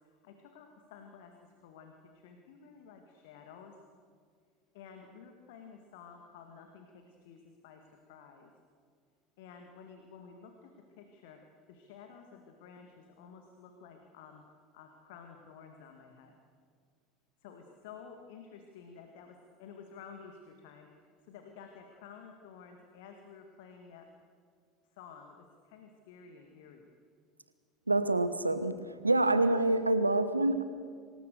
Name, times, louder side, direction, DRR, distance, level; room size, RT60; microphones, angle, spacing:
voice 1, 0.0-3.7 4.7-8.5 9.4-14.4 14.7-16.3 17.4-24.1 24.9-26.9 29.2-29.5, left 6 dB, 60° left, 4 dB, 2.0 m, -52 dB
voice 2, 27.9-30.6, right 2 dB, 85° right, 13 dB, 1.0 m, -27 dB
25.5 x 19.5 x 6.8 m, 2.1 s
figure-of-eight pair, 75°, 0 cm